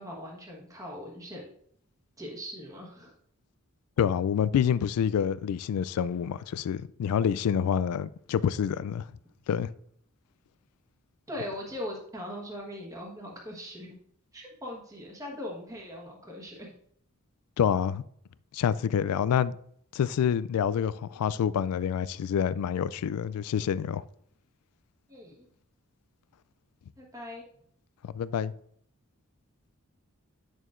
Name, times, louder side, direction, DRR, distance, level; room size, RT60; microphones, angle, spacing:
voice 1, 0.0-1.5 2.2-3.1 11.3-13.9 14.3-16.7 25.1-25.5 27.0-27.5, left 1 dB, 15° right, 1.2 m, -40 dB
voice 2, 4.0-9.1 9.5-9.7 17.6-18.0 18.5-19.6 19.9-24.0 28.0-28.5, left 8 dB, 85° left, 0.3 m, -27 dB
9.1 x 6.3 x 2.5 m
head